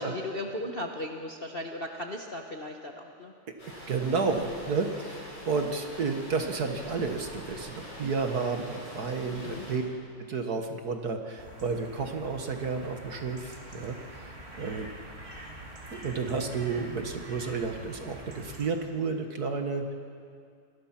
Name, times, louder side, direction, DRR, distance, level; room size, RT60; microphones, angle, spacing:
voice 1, 0.0-3.3 4.3-4.6 7.5-7.6 9.3-9.7, left 1 dB, 35° left, 2 dB, 1.1 m, -37 dB
sound 1, 3.6-9.8, left 1 dB, 60° left, 8.1 m, -44 dB
voice 2, 3.9-9.8 10.3-14.9 15.9-19.9, right 4 dB, 50° right, 5 dB, 1.7 m, -31 dB
sound 2, 11.4-18.7, equal, 30° right, 3.2 m, -45 dB
27.0 x 21.0 x 5.9 m, 2.2 s
omnidirectional pair, 2.4 m